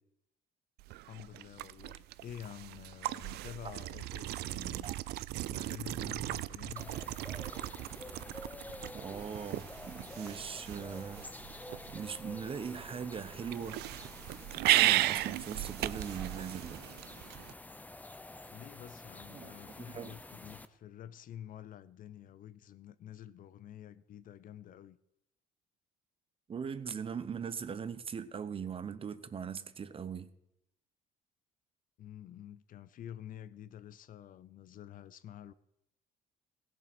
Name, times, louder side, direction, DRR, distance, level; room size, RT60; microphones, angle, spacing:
sound 1, 0.8-17.5, right 16 dB, 75° right, 0.4 m, -36 dB
voice 1, 1.0-4.9 5.4-6.9 18.5-25.0 32.0-35.5, left 10 dB, 55° left, 0.6 m, -49 dB
sound 2, 6.8-20.7, left 2 dB, 10° left, 0.7 m, -49 dB
voice 2, 8.9-11.3 11.9-13.8 14.5-16.8 19.3-19.6 19.9-20.2 26.5-30.3, right 7 dB, 35° right, 0.8 m, -40 dB
16.5 x 7.5 x 6.0 m
cardioid pair, 110°, 17 cm